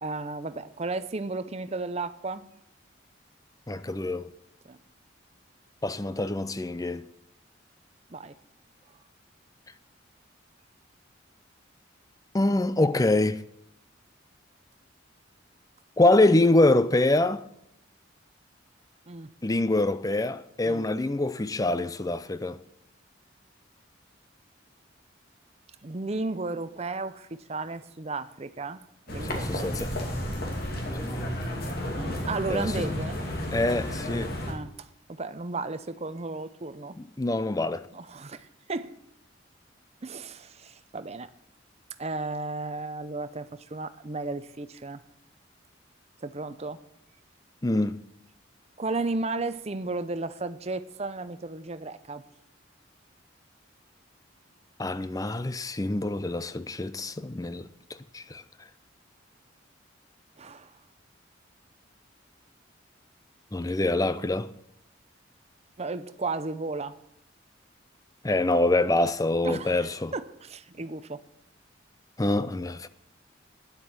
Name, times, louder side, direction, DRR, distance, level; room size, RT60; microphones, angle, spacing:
voice 1, 0.0-2.5 4.6-4.8 8.1-8.3 19.1-19.3 20.6-20.9 25.8-28.8 29.1-29.7 32.0-33.2 34.5-37.0 37.9-38.9 40.0-41.3 42.0-45.0 46.2-46.8 48.8-52.2 60.4-60.7 65.8-66.9 69.4-71.2, right 3 dB, 35° right, 0.6 m, -34 dB
voice 2, 3.7-4.3 5.8-7.1 12.3-13.4 16.0-17.4 19.4-22.6 29.3-29.9 30.9-31.4 32.5-32.8 33.5-34.4 37.0-37.9 47.6-48.0 54.8-57.7 58.1-58.4 63.5-64.5 68.2-70.1 72.2-72.9, left 2 dB, 20° left, 0.5 m, -25 dB
sound 1, 29.1-34.5, equal, 50° left, 2.6 m, -32 dB
9.8 x 7.8 x 8.8 m
head